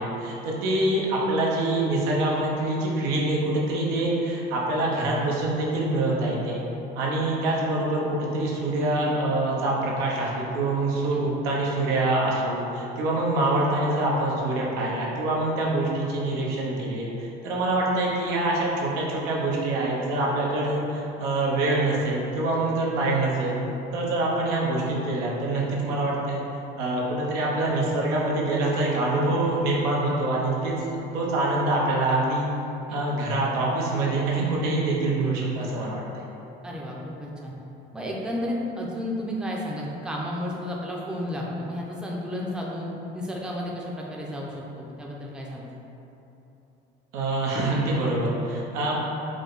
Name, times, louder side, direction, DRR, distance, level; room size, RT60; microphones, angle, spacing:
voice 1, 0.0-6.6 6.9-23.6 23.9-26.4 26.8-32.4 32.9-36.2 47.1-49.0, right 2 dB, 85° right, -4 dB, 0.8 m, -25 dB
voice 2, 36.6-37.5 37.9-45.7, left 1 dB, 5° right, -3 dB, 0.5 m, -32 dB
4.8 x 2.2 x 3.9 m, 2.9 s
supercardioid pair, 95°, 21 cm